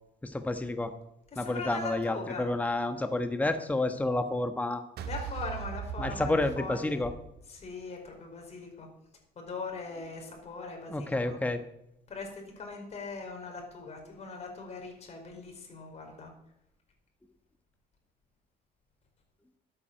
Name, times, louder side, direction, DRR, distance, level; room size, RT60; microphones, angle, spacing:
voice 1, 0.2-0.9 1.4-4.8 6.0-7.1 10.9-11.6, left 2 dB, 10° left, 8 dB, 1.1 m, -30 dB
voice 2, 1.3-2.6 5.0-7.0 7.5-8.9 9.3-11.4 12.1-16.3, left 3 dB, 40° left, 2 dB, 4.9 m, -40 dB
sound 1, 5.0-7.3, right 8 dB, 70° right, 1.8 m, -38 dB
12.0 x 9.0 x 7.5 m, 0.79 s
cardioid pair, 110°, 17 cm